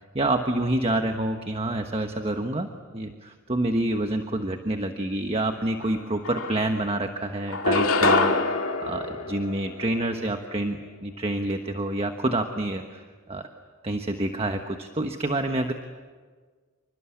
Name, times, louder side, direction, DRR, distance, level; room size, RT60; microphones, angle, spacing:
voice 1, 0.1-2.7 2.9-13.5 13.8-15.7, right 1 dB, 30° right, 5 dB, 1.3 m, -28 dB
sound 1, 5.8-5.9 6.2-7.0 7.5-10.1, left 3 dB, 75° left, 2.1 m, -25 dB
27.5 x 24.5 x 8.6 m, 1.5 s
head